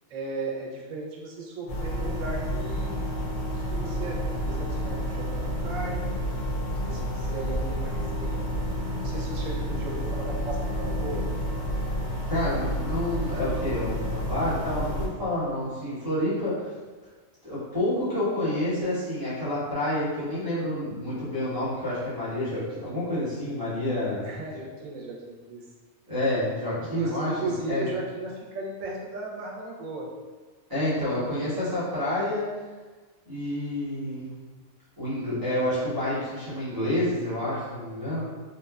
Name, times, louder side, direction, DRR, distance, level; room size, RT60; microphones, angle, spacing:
voice 1, 0.1-2.9 3.5-6.1 6.8-8.4 9.0-11.3 24.2-25.6 26.9-30.1 31.2-31.6, right 2 dB, 85° right, -2 dB, 1.0 m, -36 dB
sound 1, 1.7-15.1, equal, 65° left, 0.8 m, -30 dB
voice 2, 12.3-16.7 17.4-24.2 26.1-27.9 30.7-32.4 33.3-34.3 35.0-38.2, left 1 dB, 20° right, -11 dB, 0.8 m, -29 dB
3.0 x 2.1 x 2.3 m, 1.4 s
omnidirectional pair, 1.3 m